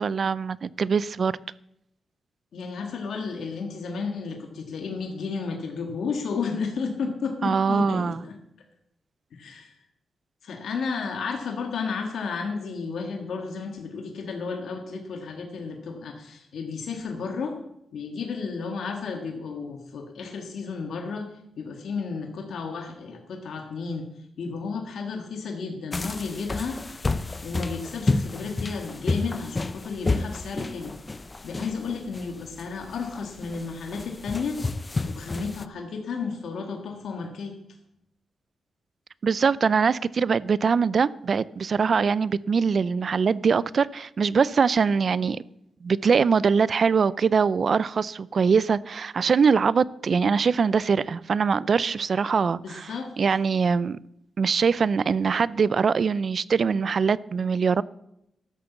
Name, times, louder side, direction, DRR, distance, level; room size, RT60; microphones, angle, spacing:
voice 1, 0.0-1.3 7.4-8.2 39.2-45.4 45.8-52.9 53.2-54.0 54.4-57.8, right 5 dB, 55° right, 0.4 m, -23 dB
voice 2, 2.5-8.4 9.3-9.8 10.4-17.6 17.9-24.1 24.4-26.8 27.4-30.9 31.4-34.6 35.0-37.5 52.5-53.1, left 5 dB, 80° left, 1.7 m, -32 dB
sound 1, 25.9-35.7, left 3 dB, 30° left, 0.6 m, -30 dB
13.0 x 6.8 x 7.2 m
cardioid pair, 75°, 0 cm